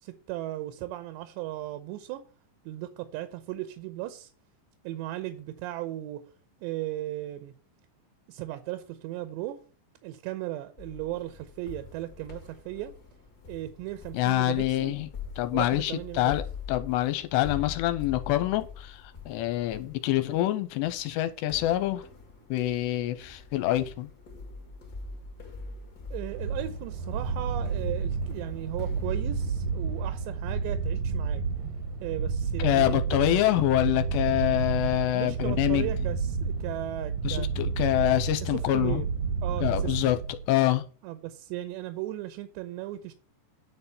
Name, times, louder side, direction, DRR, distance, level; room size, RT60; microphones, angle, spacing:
voice 1, 0.0-2.2 2.7-4.3 4.8-6.2 6.6-7.5 8.3-9.6 10.0-12.9 13.5-15.0 15.5-16.4 26.1-31.4 32.0-33.4 35.1-37.5 38.4-39.1 39.4-40.1 41.0-43.1, right 14 dB, 80° right, 2.9 m, -36 dB
sound 1, 10.8-30.3, left 4 dB, 35° left, 1.5 m, -44 dB
voice 2, 14.1-15.1 15.4-16.4 16.7-22.0 22.5-24.1 32.6-35.9 37.2-39.0 39.6-40.2 40.5-40.8, left 14 dB, 85° left, 2.7 m, -26 dB
sound 2, 26.3-40.6, right 5 dB, 65° right, 1.7 m, -30 dB
9.8 x 4.5 x 6.9 m
omnidirectional pair, 5.1 m